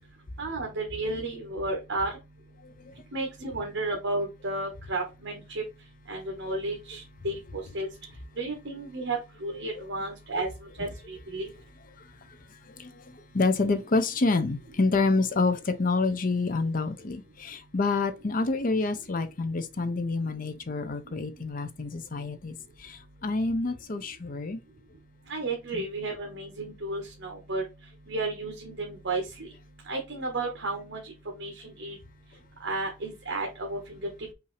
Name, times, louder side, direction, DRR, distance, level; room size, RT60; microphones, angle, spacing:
voice 1, 0.4-2.1 3.1-5.6 6.1-7.9 8.4-10.5 10.8-11.5 25.3-27.6 28.1-29.5 29.9-31.0 31.4-31.5 31.8-32.0 32.6-34.0, right 2 dB, 65° right, 1.2 m, -32 dB
voice 2, 2.6-2.9 9.7-9.8 12.7-13.0 13.3-24.6 25.7-25.8, left 3 dB, 45° left, 0.6 m, -28 dB
5.5 x 2.7 x 3.1 m
head